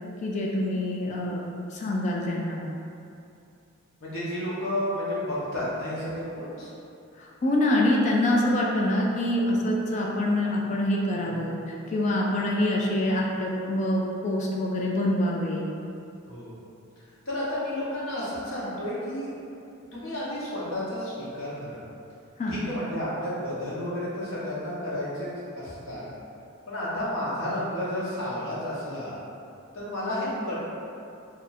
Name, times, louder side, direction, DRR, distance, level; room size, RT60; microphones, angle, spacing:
voice 1, 0.2-1.4 1.7-2.6 7.2-15.6 22.4-22.6, left 1 dB, 35° left, -2 dB, 0.3 m, -25 dB
voice 2, 4.0-6.7 11.3-11.4 16.3-16.5 17.2-19.3 19.9-21.8 22.5-26.0 26.7-29.2 29.7-30.5, left 1 dB, 65° left, -8 dB, 1.0 m, -31 dB
2.6 x 2.4 x 4.0 m, 2.6 s
head